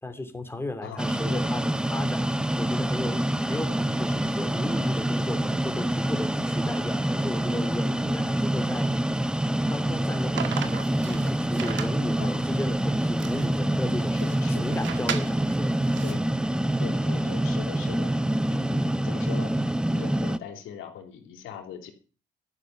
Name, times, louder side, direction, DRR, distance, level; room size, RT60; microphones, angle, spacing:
voice 1, 0.0-2.3 2.6-8.9 9.7-14.2 14.6-15.8 18.7-19.0, left 2 dB, 10° left, 6 dB, 2.9 m, -35 dB
voice 2, 0.8-1.5 12.2-12.5 14.1-14.8 16.0-16.2 16.8-18.1 18.5-19.5 19.9-21.9, left 8 dB, 90° left, 4 dB, 3.2 m, -40 dB
sound 1, 1.0-20.4, right 1 dB, 5° right, 0.7 m, -26 dB
sound 2, 10.3-16.1, right 9 dB, 70° right, 1.7 m, -37 dB
13.0 x 6.7 x 9.2 m, 0.38 s
cardioid pair, 90°, 20 cm